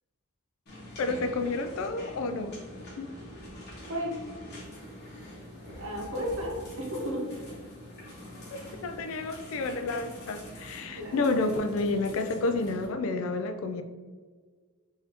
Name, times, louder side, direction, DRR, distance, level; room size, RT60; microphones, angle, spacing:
sound 1, 0.7-12.9, left 1 dB, 45° left, 1.2 m, -45 dB
voice 1, 1.0-2.6 3.0-3.1 8.8-13.8, left 3 dB, 65° left, 8 dB, 0.3 m, -30 dB
voice 2, 5.6-7.3 10.8-11.4, equal, 60° right, -1 dB, 0.8 m, -34 dB
4.0 x 2.7 x 2.8 m, 1.5 s
head